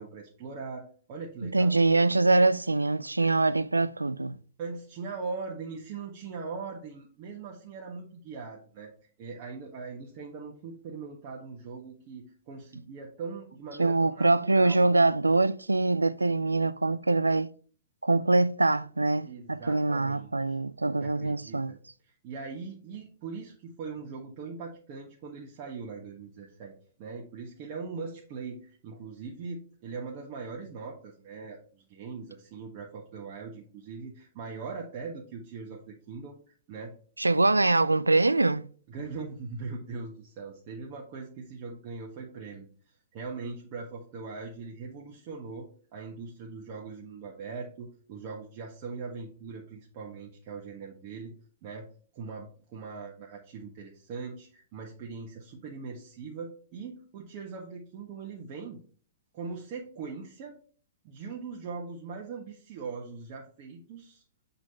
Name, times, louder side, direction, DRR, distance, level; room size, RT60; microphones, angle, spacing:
voice 1, 0.0-1.7 4.6-8.9 9.2-14.9 19.3-20.3 21.0-21.8 22.0-26.7 27.0-36.9 38.9-42.7 43.1-51.3 51.6-51.9 52.1-58.8 59.3-60.6 61.0-64.2, right 4 dB, 40° right, 1.4 m, -41 dB
voice 2, 1.4-4.4 13.8-17.5 18.0-21.7 37.2-38.7, right 2 dB, 85° right, 0.3 m, -24 dB
7.7 x 4.1 x 4.2 m
figure-of-eight pair, 105°, 0 cm